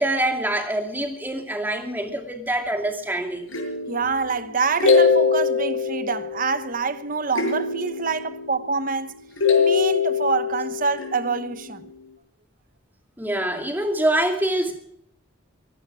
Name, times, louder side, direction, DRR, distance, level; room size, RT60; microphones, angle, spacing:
voice 1, 0.0-3.5 13.2-14.7, right 1 dB, 10° right, 2.4 m, -25 dB
sound 1, 3.5-6.8 7.3-9.0 9.4-11.7, left 5 dB, 70° left, 6.2 m, -23 dB
voice 2, 3.9-9.2 9.6-11.9, right 4 dB, 40° right, 0.9 m, -26 dB
23.5 x 12.0 x 4.9 m
head